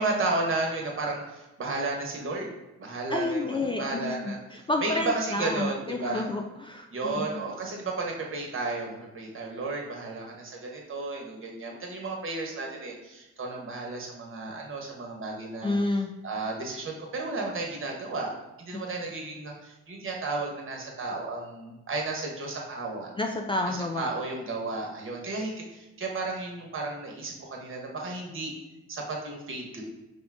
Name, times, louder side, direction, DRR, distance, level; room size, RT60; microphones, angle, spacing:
voice 1, 0.0-2.5 2.8-4.4 4.8-6.3 6.9-15.8 16.2-18.3 18.6-23.1 23.6-28.5 28.9-29.8, right 3 dB, 45° right, -1 dB, 1.1 m, -33 dB
voice 2, 3.1-4.1 4.5-7.4 15.6-16.1 18.7-18.8 23.2-24.1, left 2 dB, 20° left, 2 dB, 0.3 m, -30 dB
5.0 x 2.5 x 3.4 m, 1.0 s
cardioid pair, 90°, 30 cm